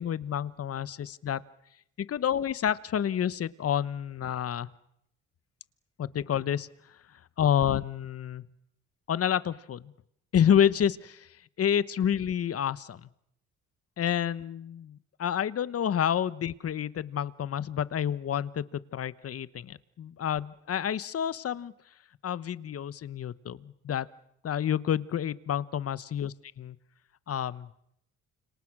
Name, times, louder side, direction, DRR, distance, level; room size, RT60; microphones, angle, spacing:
voice 1, 0.0-1.4 2.0-4.7 6.0-6.7 7.4-8.4 9.1-9.9 10.3-11.3 11.6-13.1 14.0-21.7 22.2-24.1 24.4-26.8 27.3-27.7, left 9 dB, 50° left, 17 dB, 1.1 m, -29 dB
29.5 x 26.5 x 6.2 m, 0.77 s
cardioid pair, 90°, 30 cm